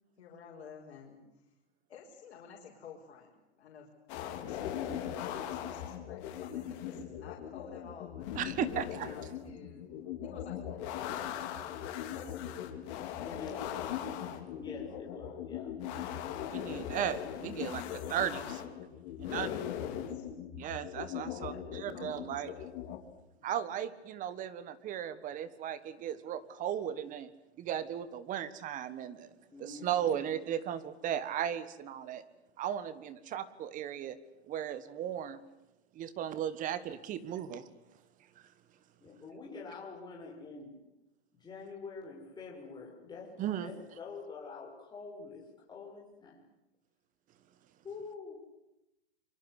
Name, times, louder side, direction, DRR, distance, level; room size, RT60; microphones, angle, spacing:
voice 1, 0.2-1.5 1.9-5.0 5.3-8.4 8.7-9.9 10.2-12.8 13.2-13.9 19.2-20.3 21.3-22.6, left 6 dB, 65° left, -2 dB, 5.6 m, -52 dB
sound 1, 4.1-23.0, left 10 dB, 40° left, 3.9 m, -40 dB
voice 2, 8.4-9.1 16.5-18.6 19.3-19.5 20.6-22.5 23.4-27.3 27.6-29.3 29.6-32.2 32.6-34.2 34.5-35.4 35.9-37.7 43.4-43.7, right 10 dB, 25° right, 15 dB, 1.6 m, -36 dB
voice 3, 13.2-13.7 14.5-15.8 29.5-30.0 39.0-40.8 41.4-46.4 47.8-48.4, left 4 dB, 10° left, -2 dB, 6.6 m, -46 dB
27.0 x 24.5 x 8.3 m, 0.90 s
hypercardioid pair, 140°, 33 cm